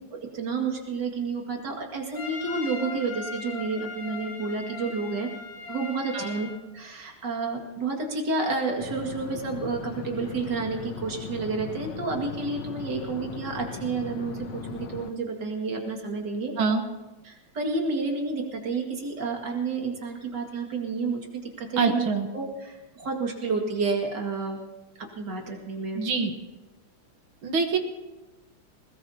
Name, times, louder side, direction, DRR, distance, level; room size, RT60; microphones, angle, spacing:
voice 1, 0.3-5.3 5.7-6.5 6.7-16.5 17.2-22.1 22.3-24.6 25.0-26.0, right 4 dB, 55° right, 1 dB, 2.7 m, -30 dB
Trumpet, 2.1-6.6, left 4 dB, 50° left, 2.7 m, -39 dB
sound 1, 8.8-15.1, left 7 dB, 70° left, 1.6 m, -38 dB
voice 2, 21.8-22.3 26.0-26.3 27.4-27.8, right 4 dB, 70° right, 5 dB, 2.1 m, -24 dB
21.0 x 20.5 x 2.8 m, 1.1 s
omnidirectional pair, 2.4 m